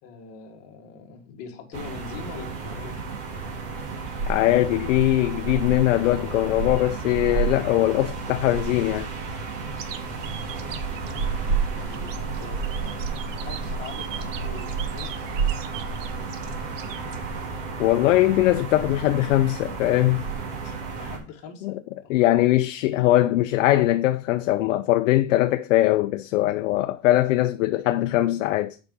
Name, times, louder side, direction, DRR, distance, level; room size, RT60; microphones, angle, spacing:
voice 1, 0.0-2.9 11.8-15.1 20.9-22.2, left 6 dB, 40° left, 1.8 m, -43 dB
sound 1, 1.7-21.2, right 4 dB, 45° right, 1.8 m, -31 dB
voice 2, 4.3-9.1 17.8-20.2 20.6-20.7 21.6-21.7 22.1-28.8, left 15 dB, 80° left, 0.6 m, -21 dB
sound 2, 9.8-17.5, right 10 dB, 80° right, 1.0 m, -42 dB
7.0 x 4.9 x 5.4 m
supercardioid pair, 165°, 38 cm